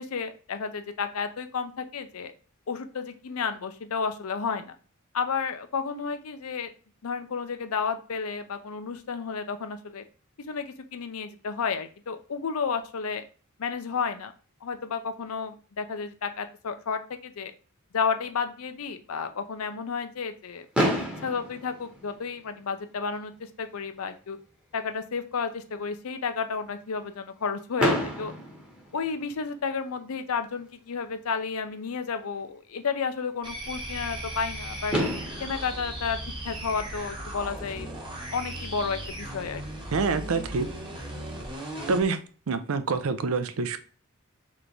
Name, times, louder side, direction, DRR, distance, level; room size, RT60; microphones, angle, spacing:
voice 1, 0.0-2.3 2.7-4.8 5.1-6.7 7.0-10.0 10.5-13.2 13.6-14.3 14.6-17.5 17.9-20.7 21.2-24.4 24.7-28.3 28.9-35.0 35.4-36.2 36.4-37.9 38.3-39.6, left 5 dB, 85° left, 9 dB, 0.5 m, -32 dB
Fireworks, 20.7-22.8 23.6-23.7 23.9-24.1 24.4-24.5 27.8-29.6 31.3-31.4 34.4-34.5 34.9-37.2, equal, 5° right, 0.9 m, -30 dB
sound 1, 33.4-42.1, right 1 dB, 25° right, 1.0 m, -37 dB
voice 2, 39.9-40.7 41.9-42.2 42.5-43.8, right 4 dB, 75° right, 10 dB, 0.5 m, -26 dB
3.4 x 3.1 x 3.9 m, 0.38 s
head